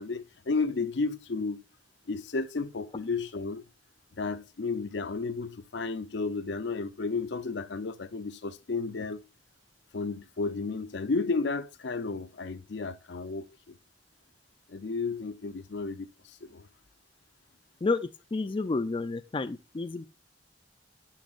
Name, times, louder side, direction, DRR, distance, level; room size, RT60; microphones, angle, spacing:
voice 1, 0.0-1.6 2.1-3.6 4.2-9.2 9.9-13.7 14.7-16.7, left 4 dB, 75° left, 0.6 m, -33 dB
voice 2, 17.8-20.0, left 3 dB, 30° left, 0.4 m, -30 dB
11.5 x 3.9 x 2.4 m
head